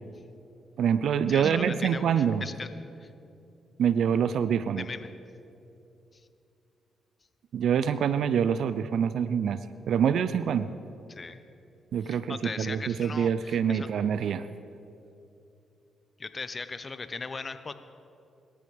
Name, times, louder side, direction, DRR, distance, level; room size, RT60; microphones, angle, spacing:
voice 1, 0.8-2.4 3.8-4.9 7.5-9.6 9.9-10.7 11.9-14.5, right 8 dB, 70° right, 14 dB, 0.5 m, -25 dB
voice 2, 1.3-2.7 3.0-3.1 4.8-5.1 6.1-6.3 11.1-11.4 12.0-13.9 16.2-17.7, left 4 dB, 40° left, 11 dB, 1.0 m, -38 dB
26.5 x 13.0 x 3.4 m, 2.7 s
hypercardioid pair, 45°, 0 cm